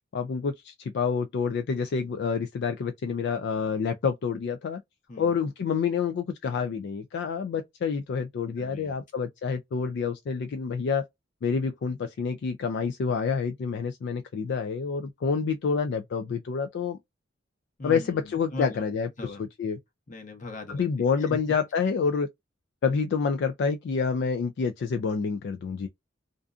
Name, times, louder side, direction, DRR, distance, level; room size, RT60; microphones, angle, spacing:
voice 1, 0.1-4.8 5.2-11.0 11.4-17.0 17.8-19.8 20.7-22.3 22.8-25.9, left 5 dB, 60° left, 0.3 m, -28 dB
voice 2, 8.6-8.9 17.8-18.8 19.2-19.4 20.1-20.8 21.2-21.4, left 2 dB, 40° left, 0.9 m, -39 dB
2.5 x 2.4 x 2.3 m
head